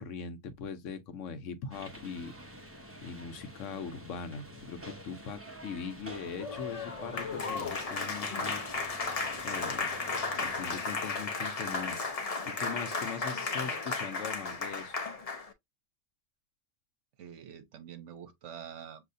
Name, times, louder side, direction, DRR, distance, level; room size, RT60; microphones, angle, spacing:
voice 1, 0.0-2.7 3.0-8.6 9.4-9.9 10.3-15.0, left 5 dB, 80° left, 1.1 m, -41 dB
sound 1, 1.7-10.6, right 1 dB, 15° right, 0.8 m, -48 dB
Applause, 6.3-15.5, left 4 dB, 40° left, 0.6 m, -34 dB
voice 2, 17.2-19.0, right 8 dB, 70° right, 1.1 m, -46 dB
6.4 x 2.7 x 2.6 m
omnidirectional pair, 1.3 m